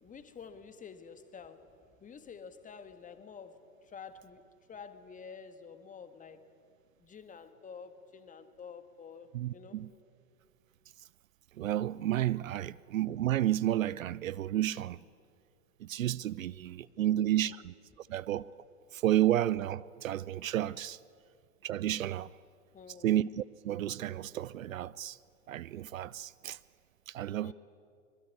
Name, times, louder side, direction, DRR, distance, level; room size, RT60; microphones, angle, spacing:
voice 1, 0.0-1.7 2.0-6.5 7.0-9.8 17.0-17.5 22.7-23.1 27.4-27.5, left 6 dB, 15° left, 1.7 m, -49 dB
voice 2, 9.3-9.9 11.6-15.0 15.8-18.5 18.9-21.0 21.6-22.3 23.0-25.2 25.5-26.6 27.1-27.5, right 13 dB, 65° right, 0.6 m, -31 dB
24.5 x 22.5 x 9.7 m
figure-of-eight pair, 90°, 44 cm